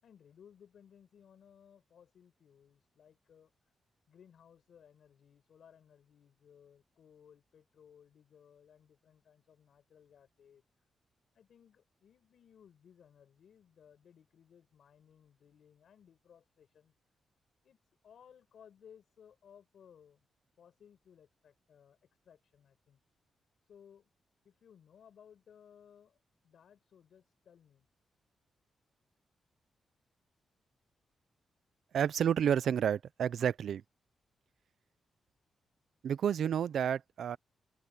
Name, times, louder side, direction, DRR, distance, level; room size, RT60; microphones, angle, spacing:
voice 1, 0.0-3.5 4.1-10.6 11.3-16.9 17.6-17.8 18.0-20.3 20.6-22.0 22.2-23.0 23.7-24.1 24.4-26.2 26.4-27.9, left 8 dB, 70° left, 4.8 m, -61 dB
voice 2, 31.9-33.8 36.0-37.4, right 8 dB, 75° right, 0.6 m, -30 dB
open air
cardioid pair, 120°, 0 cm